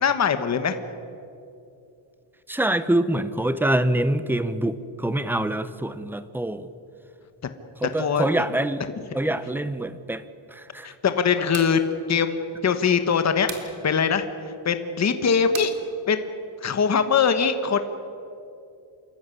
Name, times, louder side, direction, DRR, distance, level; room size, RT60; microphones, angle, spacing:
voice 1, 0.0-0.7 8.0-8.3 8.8-9.1 10.8-11.8 12.1-15.7 16.1-16.3 16.6-17.8, left 6 dB, 35° left, 9 dB, 1.1 m, -22 dB
voice 2, 2.5-6.7 7.8-8.8 9.1-10.2 10.5-10.9, right 1 dB, 5° right, 13 dB, 0.7 m, -25 dB
sound 1, 11.5-11.8 13.5-13.7 15.5-15.8, right 6 dB, 70° right, 2.9 m, -36 dB
26.5 x 14.5 x 9.7 m, 2.7 s
wide cardioid pair, 165°, 49 cm